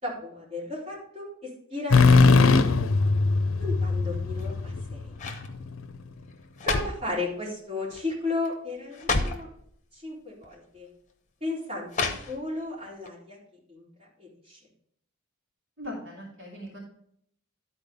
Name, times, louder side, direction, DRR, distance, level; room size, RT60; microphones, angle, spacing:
voice 1, 0.0-2.7 3.6-5.2 6.6-9.5 9.9-10.9 11.4-11.9 12.3-13.4 13.7-14.6, left 2 dB, 30° right, -7 dB, 3.9 m, -35 dB
sound 1, 1.9-5.7, left 4 dB, 65° left, 0.6 m, -20 dB
sound 2, 4.3-4.7 5.1-5.5 6.3-7.1 7.9-8.2 8.4-8.5 8.9-9.5 10.4-10.5 11.9-12.6 13.0-13.1, left 3 dB, 35° left, 0.9 m, -30 dB
voice 2, 15.8-16.8, left 1 dB, 60° right, -5 dB, 3.0 m, -39 dB
11.5 x 4.4 x 5.2 m, 0.67 s
head